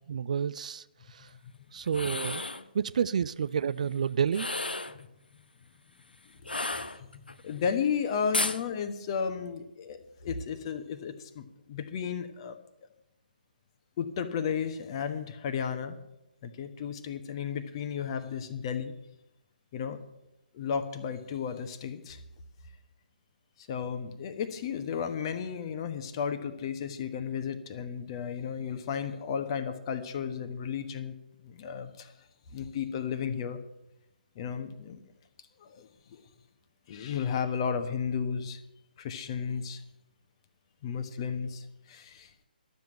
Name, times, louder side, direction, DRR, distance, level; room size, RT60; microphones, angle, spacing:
voice 1, 0.1-0.8 1.1-1.3 1.7-2.4 2.7-4.5, right 7 dB, 50° right, 0.4 m, -29 dB
sound 1, 1.8-2.7 4.3-5.0 6.4-7.3 8.3-8.6, left 2 dB, 80° left, 0.9 m, -32 dB
voice 2, 7.4-12.6 14.0-16.0 16.4-18.9 19.7-20.0 20.5-22.2 23.6-31.1 31.4-32.1 32.5-33.6 34.3-35.0 35.6-36.2 36.9-38.6 39.0-39.8 40.8-42.3, left 7 dB, 35° left, 1.2 m, -33 dB
12.0 x 7.7 x 8.8 m
figure-of-eight pair, 140°, 5 cm